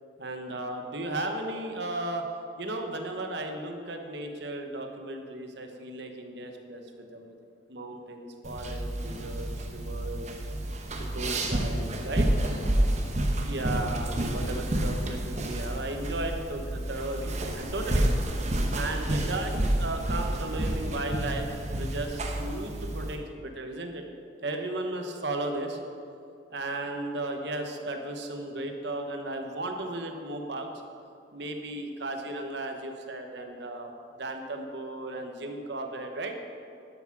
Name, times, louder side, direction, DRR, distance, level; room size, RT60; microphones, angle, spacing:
voice 1, 0.2-2.2 2.6-6.8 7.1-7.3 7.7-10.3 11.1-12.3 13.4-18.1 18.7-24.0 24.4-25.8 26.5-30.7 31.3-36.3, right 2 dB, 60° right, 4 dB, 1.1 m, -35 dB
sound 1, 8.4-23.2, right 1 dB, 35° right, 0.9 m, -29 dB
12.0 x 6.0 x 6.0 m, 2.4 s
head